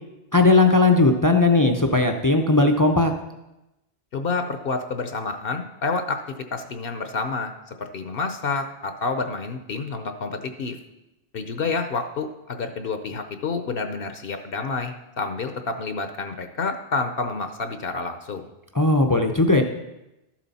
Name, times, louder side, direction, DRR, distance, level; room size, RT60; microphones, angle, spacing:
voice 1, 0.3-3.1 18.7-19.6, left 2 dB, 25° left, 4 dB, 0.5 m, -17 dB
voice 2, 4.1-7.5 7.9-10.8 11.3-18.5, left 4 dB, 65° left, 7 dB, 0.9 m, -29 dB
12.5 x 7.4 x 4.1 m, 0.94 s
omnidirectional pair, 1.1 m